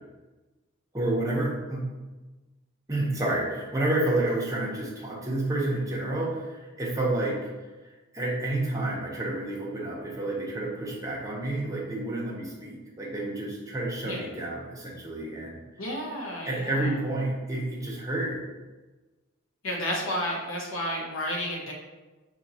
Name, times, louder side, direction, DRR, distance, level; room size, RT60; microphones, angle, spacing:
voice 1, 0.9-1.9 2.9-7.4 8.1-15.6 16.4-18.4, right 2 dB, 15° right, -4 dB, 0.8 m, -29 dB
voice 2, 15.8-16.9 19.6-21.7, equal, 75° left, -1 dB, 0.9 m, -31 dB
5.1 x 2.8 x 2.8 m, 1.2 s
head